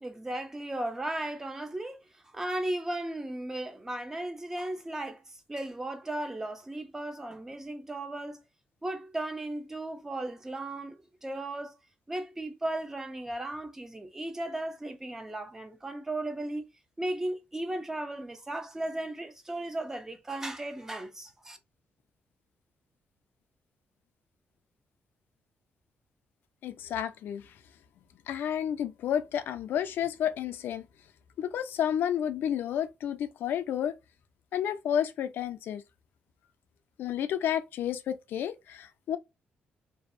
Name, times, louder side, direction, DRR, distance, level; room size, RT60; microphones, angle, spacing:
voice 1, 0.0-2.0 2.3-5.2 5.5-8.4 8.8-11.7 12.1-16.7 17.0-21.6, right 1 dB, 15° right, 0.4 m, -36 dB
voice 2, 26.6-27.5 28.3-30.8 31.4-34.0 34.5-35.8 37.0-39.2, left 9 dB, 80° left, 0.3 m, -31 dB
2.5 x 2.0 x 2.5 m
cardioid pair, 140°, 3 cm